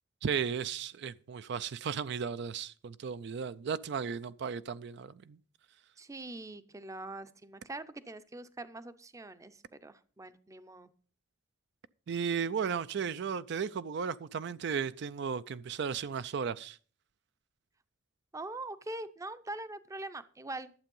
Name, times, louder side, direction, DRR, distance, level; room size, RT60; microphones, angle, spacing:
voice 1, 0.2-5.4 12.1-16.8, right 6 dB, 65° right, 0.4 m, -35 dB
voice 2, 6.0-10.9 18.3-20.7, right 2 dB, 15° right, 0.6 m, -43 dB
11.5 x 7.6 x 5.4 m
head